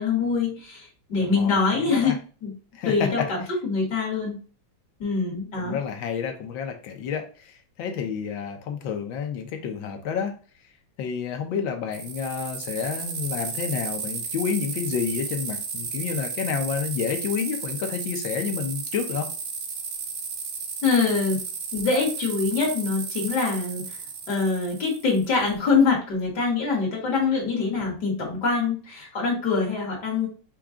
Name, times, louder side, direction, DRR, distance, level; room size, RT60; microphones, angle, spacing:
voice 1, 0.0-2.5 2.8-4.4 5.0-5.8 20.8-21.4 21.7-23.9 24.3-30.3, left 4 dB, 55° left, -3 dB, 2.1 m, -24 dB
voice 2, 1.2-2.1 2.7-3.3 5.6-10.3 11.0-19.3, left 7 dB, 70° left, 4 dB, 1.5 m, -29 dB
sound 1, 11.9-25.5, right 5 dB, 65° right, 0.8 m, -34 dB
5.9 x 2.4 x 3.7 m, 0.37 s
omnidirectional pair, 2.3 m